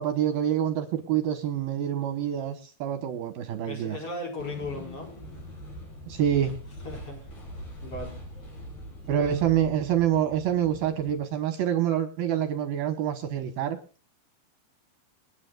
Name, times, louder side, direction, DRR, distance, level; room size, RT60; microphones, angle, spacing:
voice 1, 0.0-4.0 6.1-6.5 9.1-13.8, right 10 dB, 70° right, 8 dB, 2.7 m, -26 dB
voice 2, 3.7-5.1 6.8-7.3 7.8-8.1 9.1-9.3, left 1 dB, 35° left, 1 dB, 5.2 m, -37 dB
sound 1, 4.4-11.1, equal, 50° left, 7.1 m, -42 dB
27.5 x 9.8 x 2.4 m, 0.37 s
omnidirectional pair, 5.0 m